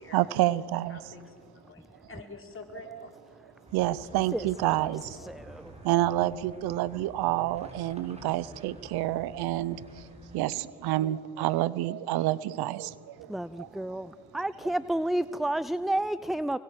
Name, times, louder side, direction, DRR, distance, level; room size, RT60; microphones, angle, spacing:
voice 1, 0.1-1.0 2.9-3.0 3.7-5.2 5.8-10.1 10.3-13.3 13.6-13.7, right 15 dB, 75° right, 0.8 m, -28 dB
voice 2, 0.9-3.1, left 4 dB, 35° left, 5.1 m, -47 dB
sound 1, 3.7-10.4, equal, 15° right, 5.5 m, -49 dB
voice 3, 4.3-4.9 5.2-5.8 13.3-16.6, right 1 dB, ahead, 0.5 m, -31 dB
24.5 x 21.0 x 7.8 m
supercardioid pair, 70°, 38 cm